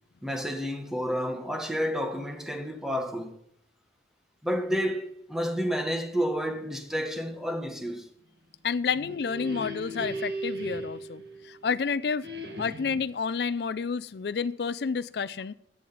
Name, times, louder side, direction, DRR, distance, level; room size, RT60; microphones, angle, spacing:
voice 1, 0.2-3.4 4.4-8.1, equal, ahead, 1.2 m, -30 dB
voice 2, 8.6-12.3 12.6-15.5, left 5 dB, 60° left, 0.4 m, -30 dB
sound 1, 8.7-11.8 12.2-13.2, right 1 dB, 60° right, 1.9 m, -37 dB
17.0 x 11.0 x 4.1 m
head